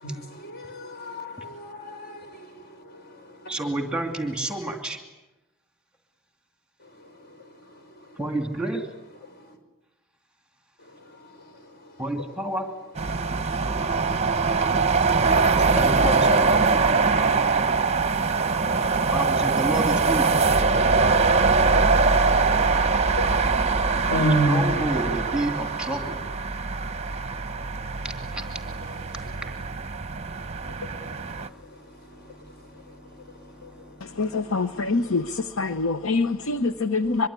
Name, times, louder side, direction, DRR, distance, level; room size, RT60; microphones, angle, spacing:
voice 1, 0.0-2.4 22.8-23.3 24.1-24.6, right 1 dB, 45° left, 5.6 m, -28 dB
voice 2, 3.5-5.0 8.2-8.9 12.0-12.7 15.8-16.7 19.0-20.3 24.5-26.2 28.0-28.4 30.7-36.2, right 1 dB, 5° right, 2.6 m, -31 dB
sound 1, 13.0-31.5, right 4 dB, 30° right, 0.9 m, -22 dB
voice 3, 34.2-37.3, left 3 dB, 65° left, 0.9 m, -25 dB
24.0 x 23.5 x 9.8 m
head